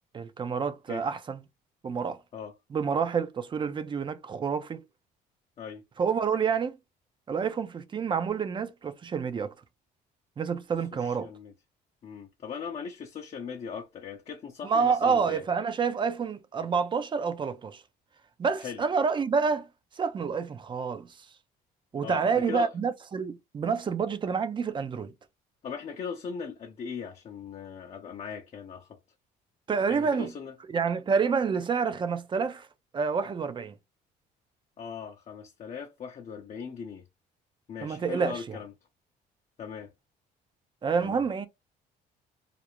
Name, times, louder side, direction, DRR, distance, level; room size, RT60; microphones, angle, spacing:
voice 1, 0.1-1.4 1.8-2.2 2.7-4.8 6.0-6.8 7.3-9.5 10.4-11.3 14.6-17.8 18.4-19.7 19.9-21.3 21.9-25.1 29.7-30.3 30.7-32.7 32.9-33.7 37.8-38.6 40.8-41.5, right 5 dB, 30° right, 0.4 m, -28 dB
voice 2, 11.0-11.5 12.0-15.4 18.6-18.8 22.0-22.7 25.6-29.0 29.9-30.5 34.8-37.0 37.7-38.7 39.6-39.9 41.0-41.2, left 6 dB, 40° left, 0.5 m, -39 dB
2.4 x 2.0 x 2.9 m
cardioid pair, 110°, 17 cm